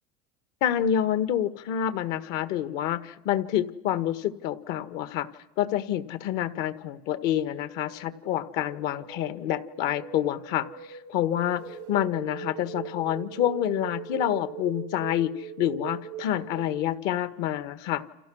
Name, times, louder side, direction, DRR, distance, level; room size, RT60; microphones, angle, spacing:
voice 1, 0.6-5.3 5.6-11.6 11.9-18.0, left 11 dB, 50° left, 13 dB, 1.5 m, -28 dB
sound 1, 7.4-17.0, right 10 dB, 85° right, 1.7 m, -41 dB
29.5 x 27.0 x 6.3 m, 0.92 s
supercardioid pair, 155°, 21 cm